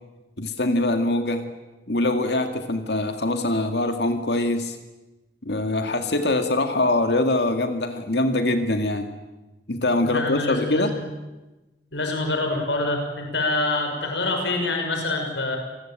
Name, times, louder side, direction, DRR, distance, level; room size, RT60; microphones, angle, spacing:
voice 1, 0.4-1.5 1.9-4.8 5.4-9.1 9.7-10.9, left 2 dB, 70° left, 7 dB, 2.2 m, -23 dB
voice 2, 10.0-11.0 11.9-15.6, left 2 dB, 90° left, 3 dB, 5.6 m, -26 dB
28.5 x 20.5 x 9.0 m, 1.1 s
head